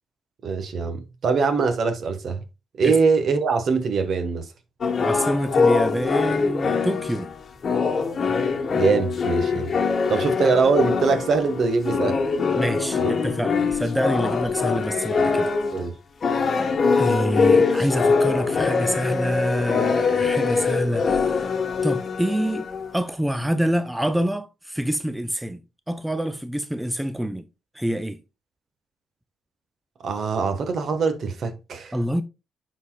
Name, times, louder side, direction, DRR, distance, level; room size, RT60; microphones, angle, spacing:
voice 1, 0.4-2.4 2.8-4.4 8.8-9.7 10.1-12.2 13.0-13.1 15.7-15.9 30.0-31.9, right 4 dB, 55° right, 1.2 m, -22 dB
sound 1, 4.8-15.9 16.2-23.0, left 5 dB, 45° left, 1.1 m, -23 dB
voice 2, 5.0-7.3 10.1-10.2 12.5-15.5 17.0-25.6 25.9-27.5 27.7-28.2 31.9-32.2, equal, 5° right, 0.4 m, -26 dB
11.0 x 4.1 x 2.3 m
cardioid pair, 90°, 0 cm